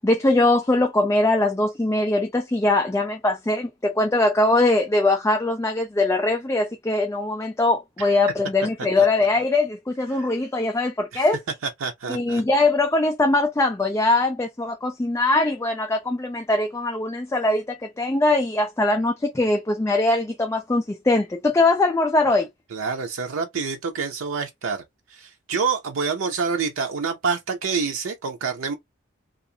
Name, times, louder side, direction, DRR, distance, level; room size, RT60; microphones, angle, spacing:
voice 1, 0.0-11.4 12.1-22.5, left 2 dB, 15° left, 0.3 m, -21 dB
voice 2, 11.8-12.4 22.7-24.8 25.1-28.7, right 5 dB, 85° right, 0.5 m, -27 dB
2.4 x 2.4 x 2.6 m
head